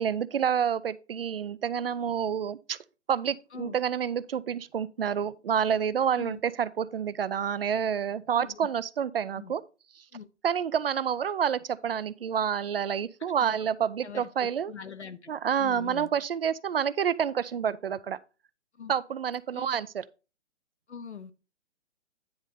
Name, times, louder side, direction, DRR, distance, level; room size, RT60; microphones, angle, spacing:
voice 1, 0.0-2.8 3.1-9.6 10.4-14.7 15.3-18.2 18.9-19.9, right 8 dB, 55° right, 0.5 m, -28 dB
voice 2, 13.4-13.7 14.0-16.1 18.7-18.9 19.5-19.8 20.9-21.3, left 6 dB, 70° left, 1.0 m, -43 dB
9.6 x 3.9 x 4.9 m
figure-of-eight pair, 130°, 35 cm